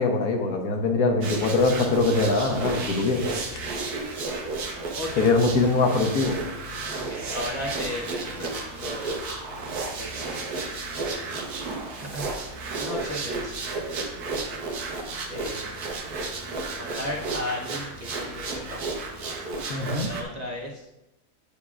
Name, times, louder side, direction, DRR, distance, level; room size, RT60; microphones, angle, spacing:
voice 1, 0.0-3.3 5.2-6.4 19.7-20.1, left 3 dB, 75° left, 3 dB, 1.4 m, -22 dB
sound 1, 1.2-20.2, right 3 dB, 85° right, 1.5 m, -33 dB
voice 2, 4.9-5.3 6.9-9.2 9.8-10.6 12.0-12.3 12.8-13.6 15.3-15.7 16.8-18.8 20.0-20.9, left 1 dB, 35° right, -4 dB, 0.8 m, -35 dB
8.5 x 7.0 x 2.4 m, 0.95 s
omnidirectional pair, 1.6 m